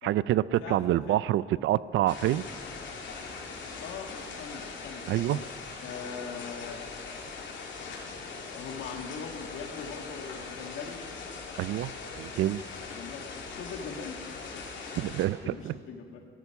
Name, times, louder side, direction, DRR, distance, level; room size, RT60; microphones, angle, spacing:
voice 1, 0.0-2.4 5.1-5.4 11.6-11.9 12.2-12.6 15.0-15.8, right 14 dB, 75° right, 19 dB, 0.4 m, -27 dB
voice 2, 0.6-1.2 3.8-5.5 5.8-6.9 8.0-11.1 12.9-14.6 15.4-16.3, left 6 dB, 85° left, 3 dB, 1.9 m, -42 dB
sound 1, 2.1-15.3, left 4 dB, 70° left, 2.7 m, -41 dB
16.5 x 13.5 x 6.0 m, 2.1 s
cardioid pair, 90°, 20 cm